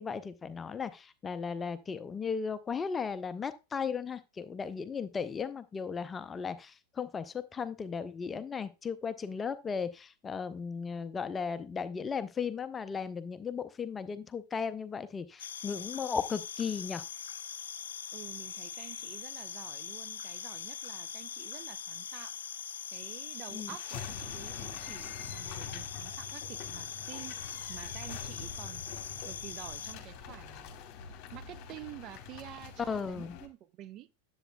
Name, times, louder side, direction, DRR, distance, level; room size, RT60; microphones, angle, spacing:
voice 1, 0.0-17.0 23.5-23.7 32.9-33.4, left 6 dB, 20° left, 0.6 m, -36 dB
sound 1, 15.4-30.0, left 8 dB, 65° left, 0.3 m, -42 dB
voice 2, 18.1-22.4 22.9-27.4 27.7-30.8 31.3-34.1, right 13 dB, 35° right, 0.5 m, -49 dB
sound 2, 23.5-33.5, left 7 dB, 40° left, 1.3 m, -45 dB
10.0 x 7.9 x 2.3 m
figure-of-eight pair, 90°, 0 cm